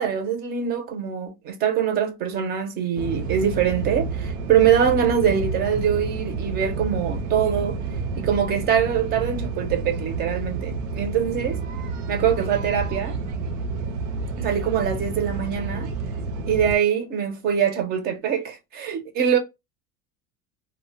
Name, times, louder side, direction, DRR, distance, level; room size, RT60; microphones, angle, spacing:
voice 1, 0.0-7.8 8.2-11.6 12.1-13.2 14.4-15.9 16.5-19.4, right 8 dB, 30° right, 0.4 m, -23 dB
sound 1, 3.0-16.8, right 3 dB, 85° right, 0.6 m, -30 dB
2.1 x 2.0 x 3.7 m
cardioid pair, 170°, 35 cm